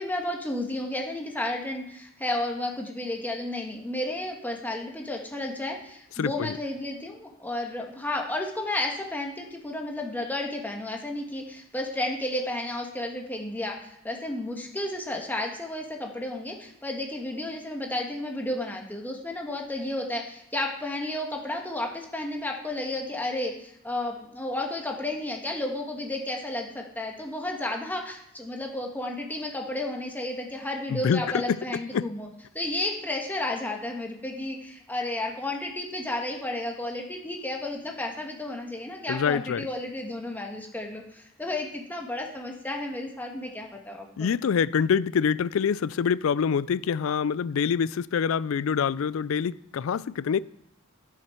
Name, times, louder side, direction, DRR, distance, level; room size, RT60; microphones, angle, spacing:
voice 1, 0.0-32.3 32.5-44.3, left 1 dB, 10° left, 1.4 m, -32 dB
voice 2, 6.2-6.6 30.9-31.6 31.9-32.1 39.1-39.7 44.2-50.4, left 6 dB, 75° left, 0.4 m, -25 dB
14.5 x 6.4 x 4.5 m
head